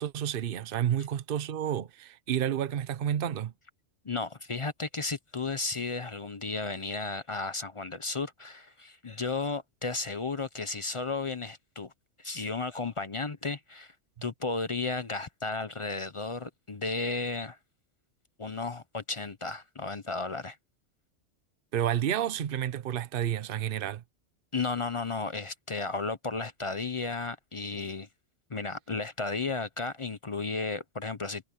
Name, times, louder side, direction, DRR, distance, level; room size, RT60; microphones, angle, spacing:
voice 1, 0.0-3.5 21.7-24.0, right 10 dB, 50° right, 0.9 m, -30 dB
voice 2, 4.0-11.9 12.2-13.9 14.2-17.6 18.4-20.6 24.5-28.1 28.5-31.4, left 3 dB, 30° left, 0.6 m, -34 dB
omnidirectional pair, 1.3 m